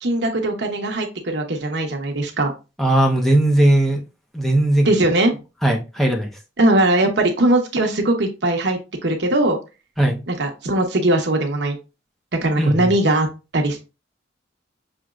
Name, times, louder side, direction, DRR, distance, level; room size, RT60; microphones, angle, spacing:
voice 1, 0.0-2.5 4.8-5.3 6.6-9.6 10.3-11.8 12.4-13.3 13.5-13.8, right 1 dB, 65° right, 0.9 m, -20 dB
voice 2, 2.8-4.0 4.3-4.9 5.6-6.3 10.0-10.2 12.6-12.9, right 1 dB, ahead, 0.8 m, -18 dB
6.2 x 3.0 x 2.4 m
head